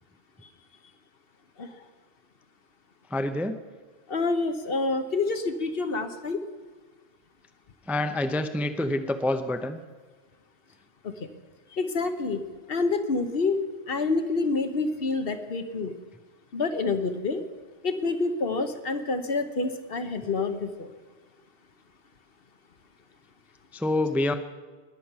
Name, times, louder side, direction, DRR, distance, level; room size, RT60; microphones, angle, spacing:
voice 1, 3.1-3.6 7.9-9.8 23.7-24.3, left 1 dB, ahead, 8 dB, 0.6 m, -27 dB
voice 2, 4.1-6.4 11.0-11.1 11.7-12.4 12.7-13.6 13.9-15.9 16.5-17.4 17.8-20.9, left 3 dB, 60° left, 8 dB, 1.2 m, -27 dB
20.0 x 7.2 x 5.9 m, 1.4 s
omnidirectional pair, 1.1 m